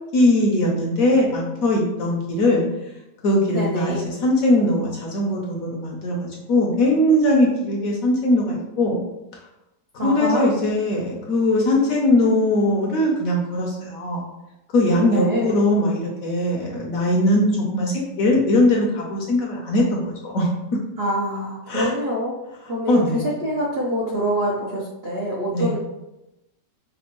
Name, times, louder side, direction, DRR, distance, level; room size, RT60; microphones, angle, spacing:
voice 1, 0.1-2.6 3.2-9.0 10.0-14.2 14.7-20.5 21.7-21.9 22.9-23.3 25.5-25.7, left 1 dB, 65° left, -1 dB, 0.9 m, -20 dB
voice 2, 3.5-4.1 10.0-10.5 15.1-15.6 21.0-22.4 22.7-25.8, equal, 60° right, -5 dB, 0.6 m, -25 dB
5.1 x 2.2 x 3.0 m, 0.93 s
omnidirectional pair, 1.9 m